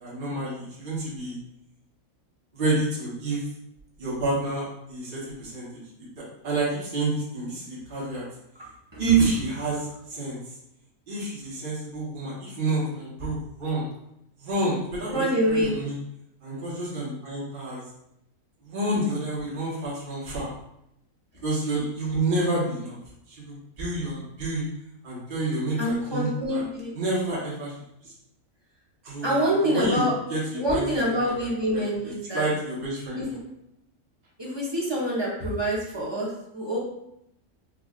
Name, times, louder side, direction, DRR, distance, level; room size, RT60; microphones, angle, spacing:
voice 1, 0.0-1.4 2.5-3.5 4.0-5.7 6.2-8.2 9.0-10.4 11.1-13.8 14.4-16.0 16.4-17.8 18.6-20.5 21.4-23.0 23.3-24.7 25.0-26.6 26.9-27.8 29.0-31.3 31.7-31.8 32.3-33.2, right 2 dB, 40° right, -8 dB, 1.2 m, -28 dB
voice 2, 15.1-15.7 25.8-26.9 29.2-30.1 30.6-32.5 33.1-33.3 34.4-36.8, equal, 25° right, -5 dB, 0.7 m, -26 dB
4.9 x 2.4 x 2.4 m, 0.79 s
omnidirectional pair, 1.5 m